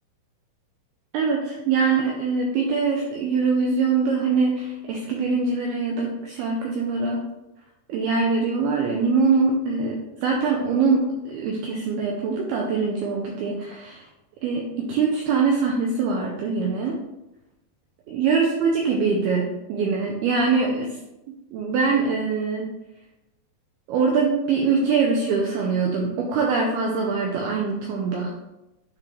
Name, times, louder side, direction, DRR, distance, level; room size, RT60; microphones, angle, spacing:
voice 1, 1.1-7.2 7.9-9.9 10.2-14.1 14.4-17.0 18.1-21.0 21.5-22.7 23.9-28.3, right 4 dB, 90° right, 0 dB, 2.2 m, -23 dB
10.0 x 3.7 x 3.2 m, 0.97 s
omnidirectional pair, 5.3 m